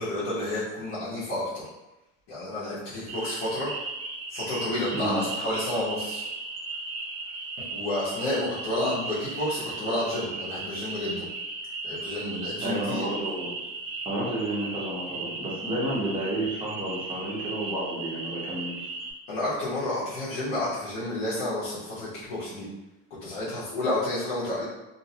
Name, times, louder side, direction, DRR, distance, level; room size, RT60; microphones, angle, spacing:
voice 1, 0.0-1.6 2.3-3.7 4.3-6.3 7.7-11.3 11.8-13.1 19.3-22.7 23.2-24.6, left 1 dB, 80° left, -10 dB, 1.0 m, -30 dB
sound 1, 3.1-19.1, right 3 dB, 55° right, 0.7 m, -36 dB
voice 2, 4.9-5.2 12.6-13.5 14.1-18.7, right 1 dB, 15° right, -5 dB, 0.6 m, -31 dB
2.7 x 2.1 x 2.7 m, 0.99 s
cardioid pair, 170°, 29 cm